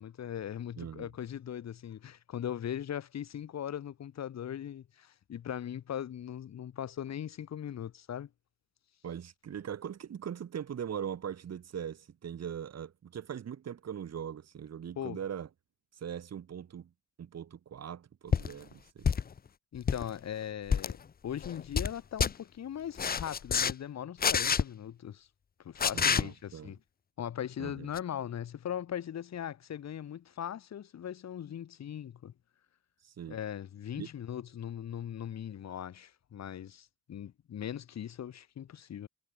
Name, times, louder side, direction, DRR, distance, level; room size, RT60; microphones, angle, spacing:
voice 1, 0.0-8.3 15.0-15.2 19.7-25.3 25.6-26.8 27.2-32.3 33.3-39.1, left 9 dB, 60° left, 3.7 m, -39 dB
voice 2, 0.8-1.1 9.0-15.5 15.9-16.9 17.2-19.1 25.9-26.7 27.6-27.9 33.0-33.4 34.0-34.1, right 8 dB, 55° right, 7.5 m, -41 dB
sound 1, 18.3-18.5 19.0-19.4 19.7-20.1 20.7-20.9 21.4-21.9 22.2-22.3 23.0-23.7 24.2-24.6 25.8-26.2 27.9-28.0, left 7 dB, 30° left, 0.7 m, -27 dB
cardioid pair, 90°, 30 cm